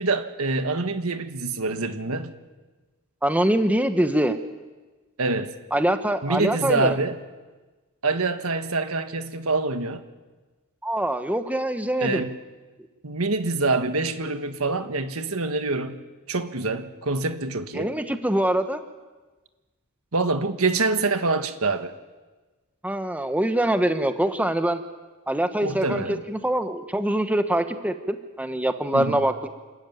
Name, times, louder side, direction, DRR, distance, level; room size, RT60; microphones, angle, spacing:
voice 1, 0.0-2.3 5.2-5.5 6.2-7.2 8.0-10.0 12.0-12.3 13.0-16.0 16.3-17.9 20.1-21.9 25.6-26.2 28.9-29.2, right 3 dB, 70° right, 8 dB, 1.6 m, -25 dB
voice 2, 3.2-4.4 5.7-6.9 10.8-12.2 17.7-18.8 22.8-24.8 25.3-29.5, right 1 dB, 5° right, 8 dB, 1.0 m, -24 dB
28.5 x 13.5 x 9.4 m, 1.3 s
head